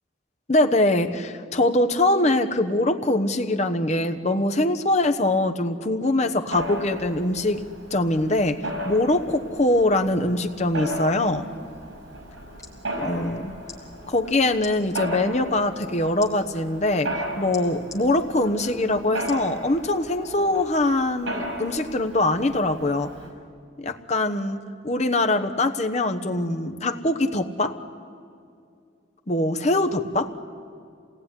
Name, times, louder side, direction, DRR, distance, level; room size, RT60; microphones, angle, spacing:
voice 1, 0.5-7.6 7.9-11.5 13.0-13.5 14.1-23.1 23.8-24.6 24.8-27.8 29.3-30.4, left 2 dB, 35° left, 7 dB, 1.1 m, -23 dB
Mechanisms, 6.5-23.3, right 1 dB, 85° right, 6.4 m, -35 dB
sound 1, 12.6-12.8 13.6-13.8 14.6-14.7 16.2-16.3 17.5-18.0 19.3-19.5 20.1-20.2, left 4 dB, 15° left, 2.7 m, -42 dB
26.5 x 18.5 x 9.9 m, 2.4 s
head